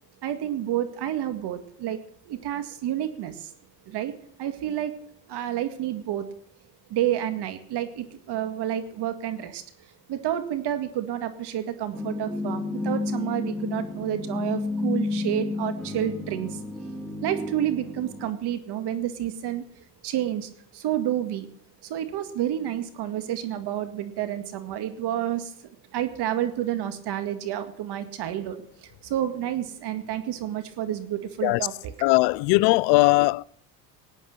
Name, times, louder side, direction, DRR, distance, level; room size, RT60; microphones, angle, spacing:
voice 1, 0.2-3.5 3.9-4.1 4.4-4.9 5.3-6.3 6.9-16.6 17.2-21.5 21.8-31.9, right 11 dB, 55° right, 2.1 m, -30 dB
sound 1, 11.9-18.3, left 3 dB, ahead, 2.9 m, -31 dB
voice 2, 32.0-33.4, left 23 dB, 70° left, 0.5 m, -19 dB
18.0 x 8.8 x 6.7 m
supercardioid pair, 85°, 46 cm